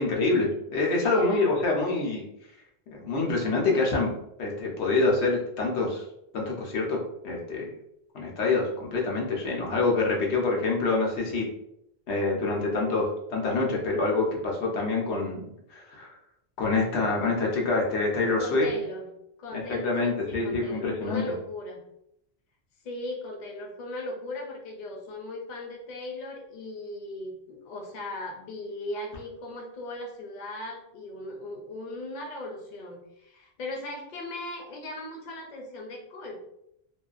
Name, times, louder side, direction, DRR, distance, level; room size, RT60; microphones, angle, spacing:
voice 1, 0.0-2.2 2.9-4.1 4.4-6.0 6.3-7.0 7.2-7.7 8.1-11.5 12.1-16.1 16.6-18.7 19.5-21.2, left 3 dB, 85° left, -1 dB, 1.0 m, -26 dB
voice 2, 1.0-1.5 18.4-19.1 19.4-21.8 22.8-36.4, left 2 dB, 55° left, 1 dB, 0.6 m, -38 dB
2.6 x 2.2 x 2.4 m, 0.79 s
omnidirectional pair, 1.1 m